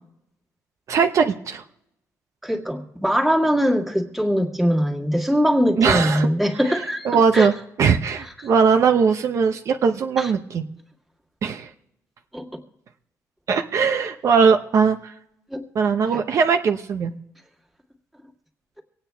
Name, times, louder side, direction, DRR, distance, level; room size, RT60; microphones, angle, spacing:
voice 1, 0.9-1.6 5.8-6.3 7.0-7.5 7.8-10.6 11.4-11.7 13.5-15.1 15.7-17.1, right 6 dB, 55° right, 5 dB, 0.7 m, -19 dB
voice 2, 2.4-7.5 8.2-8.3 10.2-10.3 12.3-12.5 15.5-15.6 16.1-16.2, equal, ahead, 0 dB, 1.9 m, -22 dB
25.5 x 8.9 x 3.4 m, 0.83 s
cardioid pair, 140°, 6 cm